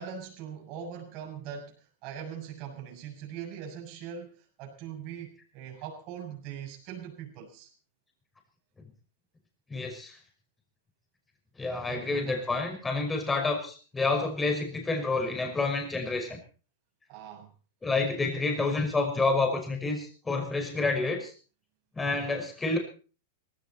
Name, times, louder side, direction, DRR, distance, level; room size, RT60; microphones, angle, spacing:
voice 1, 0.0-7.7 11.9-12.6 17.1-17.5, right 8 dB, 45° right, 1 dB, 7.2 m, -41 dB
voice 2, 9.7-10.2 11.6-16.4 17.8-21.3 21.9-22.8, left 3 dB, 15° left, 3 dB, 5.8 m, -29 dB
19.0 x 16.5 x 4.4 m, 0.39 s
hypercardioid pair, 110°, 0 cm